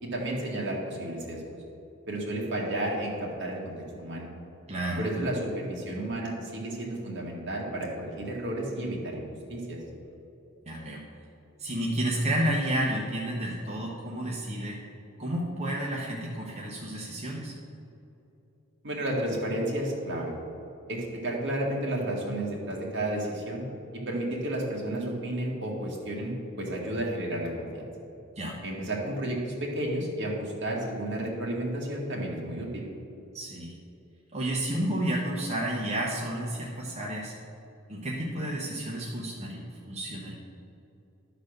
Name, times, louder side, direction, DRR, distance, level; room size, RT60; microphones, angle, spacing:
voice 1, 0.0-1.4 2.1-3.7 4.0-4.3 5.0-9.2 9.5-9.8 18.8-20.3 20.9-23.6 23.9-27.9 28.6-32.8, right 1 dB, 60° right, -2 dB, 2.0 m, -32 dB
voice 2, 4.7-5.0 10.7-11.0 11.6-14.8 15.2-17.5 28.4-28.6 33.3-33.8 34.3-37.3 37.9-40.3, right 1 dB, 30° right, -4 dB, 1.0 m, -31 dB
12.0 x 4.1 x 6.5 m, 2.8 s
head